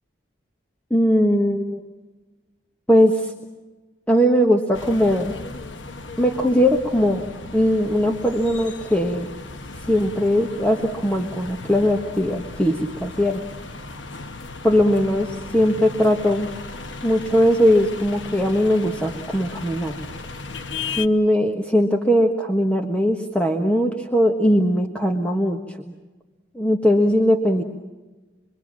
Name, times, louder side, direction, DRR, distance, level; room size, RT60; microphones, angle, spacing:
voice 1, 0.9-1.8 2.9-3.3 4.1-5.3 6.2-7.3 7.5-9.3 9.9-13.4 14.6-16.5 17.0-19.9 21.0-25.9 26.5-27.6, equal, 5° left, 3 dB, 1.4 m, -20 dB
sound 1, 4.7-21.1, left 3 dB, 80° left, 1.2 m, -36 dB
26.5 x 23.0 x 7.5 m, 1.2 s
head